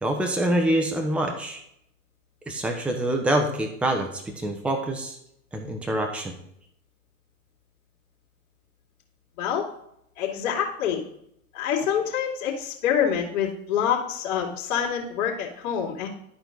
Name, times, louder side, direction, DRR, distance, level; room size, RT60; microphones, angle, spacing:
voice 1, 0.0-1.6 2.5-4.1 4.4-5.2 5.5-6.4, right 1 dB, 5° right, 3 dB, 0.9 m, -25 dB
voice 2, 10.2-11.0 11.5-16.1, left 8 dB, 65° left, -8 dB, 2.9 m, -26 dB
12.5 x 4.5 x 3.9 m, 0.73 s
hypercardioid pair, 125°, 43 cm